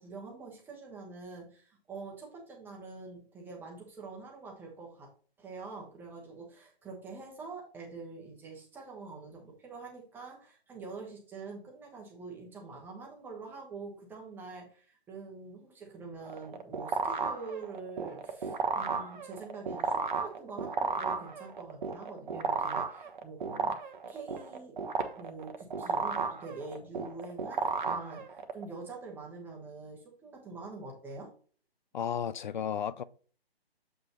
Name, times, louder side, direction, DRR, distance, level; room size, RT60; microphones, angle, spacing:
voice 1, 0.0-5.1 5.4-23.8 24.1-24.8 25.2-31.3, right 4 dB, 5° right, 1.2 m, -45 dB
sound 1, 16.2-28.6, right 5 dB, 50° right, 1.1 m, -33 dB
voice 2, 31.9-33.0, left 8 dB, 50° left, 0.5 m, -33 dB
7.7 x 5.2 x 3.0 m
figure-of-eight pair, 145°, 31 cm